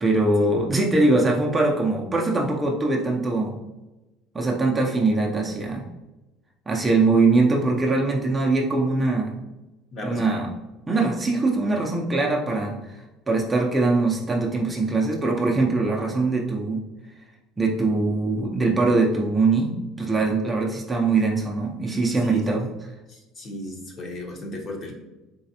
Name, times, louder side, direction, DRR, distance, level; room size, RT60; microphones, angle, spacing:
voice 1, 0.0-3.5 4.3-5.9 6.7-9.4 10.0-10.5 10.9-16.8 17.6-22.7, right 3 dB, 15° right, -1 dB, 0.5 m, -22 dB
voice 2, 9.9-10.3 22.2-22.4 23.1-25.0, left 1 dB, 35° left, 0 dB, 0.9 m, -35 dB
4.0 x 3.1 x 2.8 m, 1.1 s
cardioid pair, 135°, 0 cm